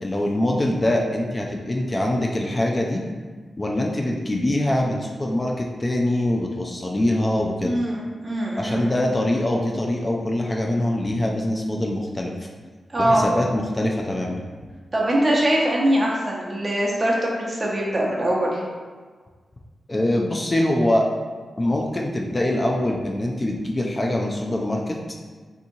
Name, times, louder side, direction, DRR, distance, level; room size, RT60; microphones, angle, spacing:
voice 1, 0.0-3.0 3.6-7.7 8.6-12.3 13.0-14.4 19.9-21.0 21.6-25.0, left 1 dB, 25° left, 0 dB, 0.3 m, -23 dB
voice 2, 7.6-8.9 12.9-13.2 14.9-18.6, right 1 dB, 30° right, -3 dB, 0.8 m, -22 dB
3.6 x 2.8 x 2.6 m, 1.5 s
cardioid pair, 85°, 0 cm